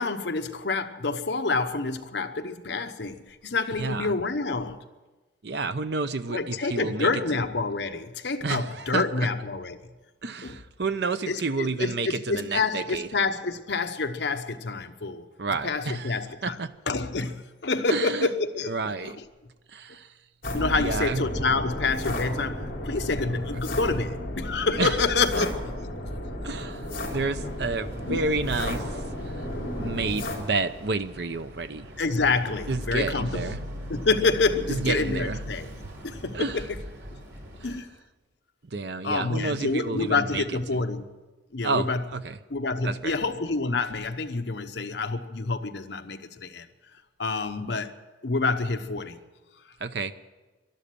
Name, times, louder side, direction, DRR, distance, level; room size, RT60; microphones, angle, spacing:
voice 1, 0.0-4.8 6.3-9.8 10.4-10.6 11.3-15.2 15.6-16.6 16.9-19.2 20.5-25.9 26.4-26.5 28.1-28.2 32.0-33.6 33.9-35.7 36.0-36.7 37.6-37.9 39.0-41.1 41.5-42.1 42.5-46.6 47.2-47.9 48.2-49.2, left 3 dB, 70° left, 1.0 m, -28 dB
voice 2, 3.8-4.1 5.4-7.1 8.4-9.3 10.2-13.1 15.4-16.7 17.9-18.3 18.7-19.2 19.7-20.1 20.7-21.2 24.8-24.9 25.4-25.5 26.4-29.0 29.8-31.9 32.7-33.6 34.7-35.4 36.3-36.6 38.7-40.4 41.6-42.4 42.8-43.1 49.8-50.1, right 3 dB, 60° right, 0.7 m, -30 dB
sound 1, 20.4-30.4, left 1 dB, 50° left, 3.9 m, -33 dB
Boat Water vehicle, 27.0-37.8, equal, 90° right, 3.7 m, -41 dB
12.0 x 12.0 x 10.0 m
head